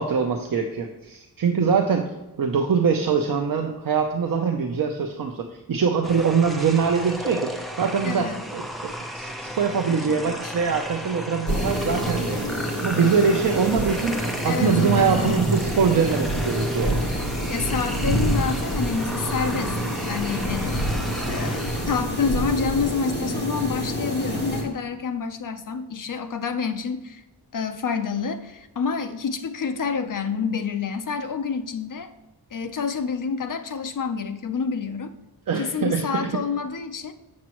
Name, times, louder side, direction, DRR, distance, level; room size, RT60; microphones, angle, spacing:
voice 1, 0.0-2.1 2.4-7.5 7.8-12.6 12.8-17.0 35.5-36.3, right 6 dB, 60° right, 3 dB, 0.7 m, -23 dB
sound 1, 6.0-23.4, equal, ahead, 0.6 m, -35 dB
voice 2, 8.0-8.4 10.4-10.6 14.4-15.4 17.5-20.9 21.3-27.2 27.5-32.1 32.5-35.1 35.6-37.1, left 5 dB, 55° left, 9 dB, 0.6 m, -28 dB
sound 2, 11.5-24.6, equal, 25° left, 1.6 m, -27 dB
7.3 x 7.2 x 3.0 m, 1.0 s
wide cardioid pair, 155°, 39 cm